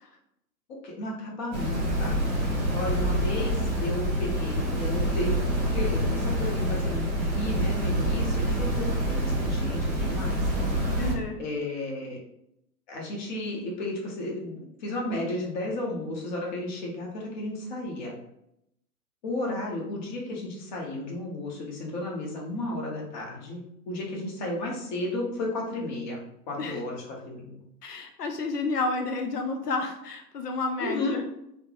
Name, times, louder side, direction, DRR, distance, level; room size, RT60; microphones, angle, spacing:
voice 1, 0.7-2.2 2.7-3.6 3.8-5.4 5.7-10.4 11.4-12.2 12.9-18.1 19.2-23.6 23.9-26.2 26.5-27.6 30.8-31.2, left 1 dB, 30° left, -2 dB, 0.7 m, -33 dB
sound 1, 1.5-11.1, right 1 dB, 20° right, 1.0 m, -27 dB
voice 2, 11.0-11.4 26.6-26.8 27.8-31.2, left 3 dB, 75° left, 4 dB, 0.5 m, -30 dB
3.3 x 2.0 x 2.9 m, 0.80 s
figure-of-eight pair, 110°, 48 cm